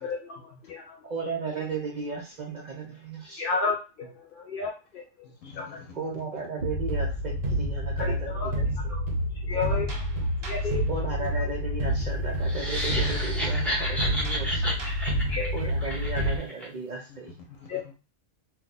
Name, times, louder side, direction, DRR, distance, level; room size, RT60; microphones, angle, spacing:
voice 1, 0.0-1.0 3.4-5.0 5.5-5.8 8.0-8.5 8.9-9.0 9.5-10.0 10.5-10.8 15.3-15.5 17.7-17.9, left 4 dB, 55° left, -1 dB, 0.7 m, -32 dB
voice 2, 1.0-3.4 5.9-8.9 10.9-14.8 15.5-17.3, right 4 dB, 55° right, -1 dB, 0.5 m, -35 dB
voice 3, 5.2-6.1 6.4-6.5 9.4-9.8 15.0-15.4 17.1-17.9, left 6 dB, 85° left, 2 dB, 1.0 m, -48 dB
sound 1, 6.6-16.4, equal, 80° right, 1.3 m, -28 dB
sound 2, 12.4-16.7, equal, ahead, 0.5 m, -32 dB
2.6 x 2.2 x 4.0 m, 0.31 s
omnidirectional pair, 1.3 m